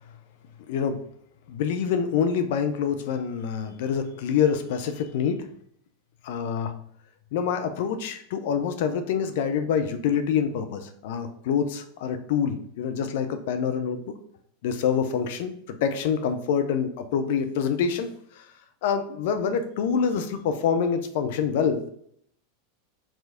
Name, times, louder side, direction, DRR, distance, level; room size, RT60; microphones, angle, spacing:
voice 1, 0.7-1.0 1.5-5.5 6.2-6.8 7.3-14.1 14.6-15.5 15.8-18.5 18.8-21.9, left 7 dB, 65° left, 8 dB, 0.7 m, -26 dB
5.0 x 3.8 x 5.1 m, 0.66 s
hypercardioid pair, 90°, 0 cm